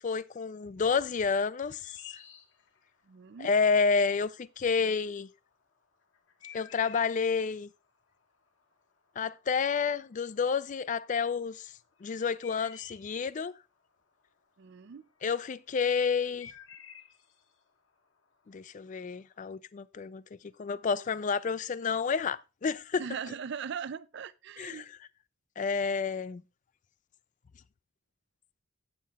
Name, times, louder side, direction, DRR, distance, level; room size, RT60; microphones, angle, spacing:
voice 1, 0.0-1.9 3.4-5.3 6.5-7.7 9.2-11.7 12.0-13.5 15.2-16.5 18.5-20.2 20.6-23.0 24.6-24.8 25.6-26.4, left 5 dB, 35° left, 0.3 m, -29 dB
sound 1, 1.5-19.5, left 8 dB, 60° left, 1.0 m, -55 dB
voice 2, 3.1-3.5 14.6-15.0 23.0-24.9, right 7 dB, 50° right, 0.4 m, -39 dB
8.6 x 7.4 x 3.4 m
head